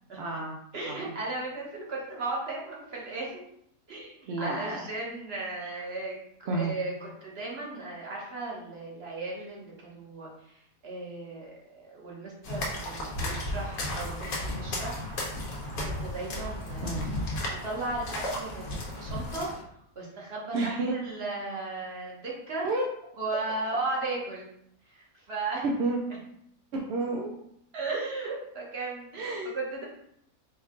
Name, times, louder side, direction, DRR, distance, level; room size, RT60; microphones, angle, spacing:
voice 1, 0.2-0.6 0.9-1.1 4.3-4.9 5.6-5.8 6.5-6.7 16.8-17.1 20.5-20.9 22.6-22.9 25.6-26.0 26.7-27.4 29.1-29.5, right 2 dB, 60° right, -1 dB, 0.7 m, -31 dB
voice 2, 0.7-3.4 3.9-14.3 14.6-15.0 15.8-19.5 19.9-22.7 23.2-24.5 24.9-25.6 27.7-29.8, right 3 dB, 45° right, -3 dB, 1.3 m, -36 dB
sound 1, 12.4-19.6, left 1 dB, 80° left, 1.4 m, -34 dB
4.5 x 2.4 x 3.7 m, 0.71 s
omnidirectional pair, 1.5 m